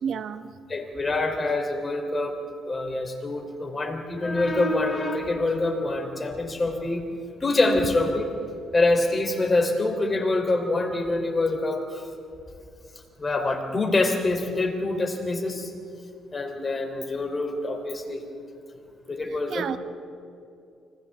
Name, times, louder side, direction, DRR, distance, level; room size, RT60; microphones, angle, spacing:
voice 1, 0.0-0.5 19.3-19.8, right 7 dB, 65° right, 1.1 m, -31 dB
voice 2, 0.7-2.4 2.6-7.0 7.4-8.3 8.7-12.0 13.2-15.7 16.3-18.2 19.1-19.7, left 2 dB, 30° left, 3.6 m, -25 dB
29.5 x 25.0 x 3.7 m
cardioid pair, 90°, 0 cm